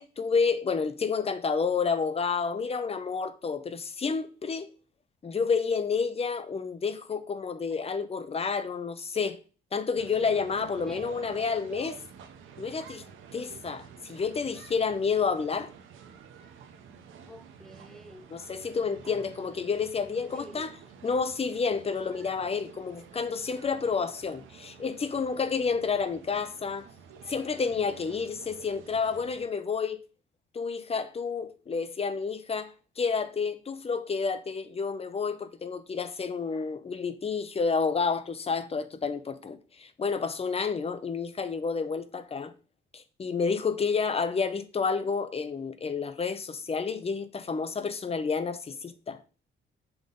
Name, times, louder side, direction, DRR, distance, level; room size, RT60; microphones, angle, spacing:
voice 1, 0.0-4.7 5.2-9.4 9.7-12.0 12.6-13.0 13.3-15.7 18.3-20.7 21.0-26.9 27.3-30.0 30.5-42.5 42.9-49.2, left 5 dB, 30° left, 0.7 m, -30 dB
sound 1, 9.9-29.4, right 7 dB, 85° right, 0.8 m, -49 dB
voice 2, 10.9-11.3 17.3-18.3 19.2-19.5 20.3-20.8, equal, ahead, 1.1 m, -49 dB
6.9 x 3.8 x 3.8 m
cardioid pair, 90°, 20 cm